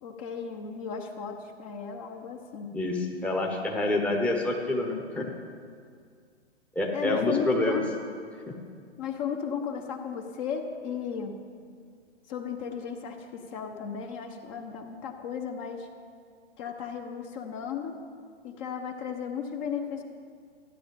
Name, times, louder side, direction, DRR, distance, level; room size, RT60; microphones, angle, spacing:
voice 1, 0.0-2.7 6.9-7.9 9.0-11.4 12.3-15.9 16.6-18.0 18.4-20.0, left 7 dB, 30° left, 4 dB, 1.2 m, -35 dB
voice 2, 2.7-5.3 6.7-7.8, left 2 dB, 5° left, 0 dB, 1.1 m, -27 dB
14.0 x 9.9 x 7.1 m, 2.1 s
figure-of-eight pair, 120°, 34 cm